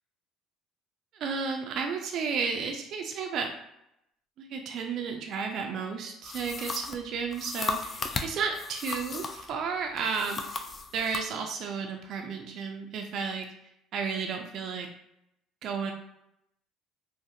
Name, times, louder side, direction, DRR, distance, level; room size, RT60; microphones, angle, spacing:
voice 1, 1.1-3.5 4.4-10.4 10.9-13.5 13.9-14.9 15.6-15.9, right 5 dB, 60° right, 3 dB, 0.3 m, -32 dB
sound 1, 6.2-9.5 10.0-11.3, left 4 dB, 40° left, 0.3 m, -36 dB
2.4 x 2.4 x 2.6 m, 0.81 s
hypercardioid pair, 70°, 0 cm